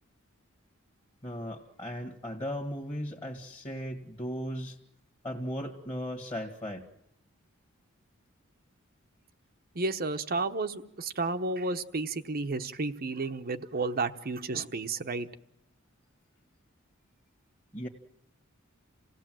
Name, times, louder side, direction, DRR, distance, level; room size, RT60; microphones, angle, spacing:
voice 1, 1.2-4.8 5.2-6.9 17.7-17.9, equal, 20° left, 0 dB, 1.7 m, -37 dB
voice 2, 9.7-15.3, right 3 dB, 45° right, 10 dB, 1.0 m, -32 dB
28.0 x 17.0 x 7.6 m, 0.82 s
head